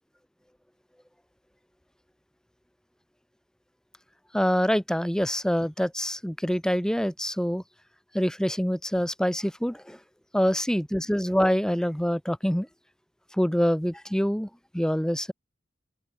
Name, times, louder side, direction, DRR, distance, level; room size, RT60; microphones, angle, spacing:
voice 1, 4.3-7.6 8.1-10.0 10.3-12.7 13.3-15.3, equal, 5° left, 1.2 m, -25 dB
open air
head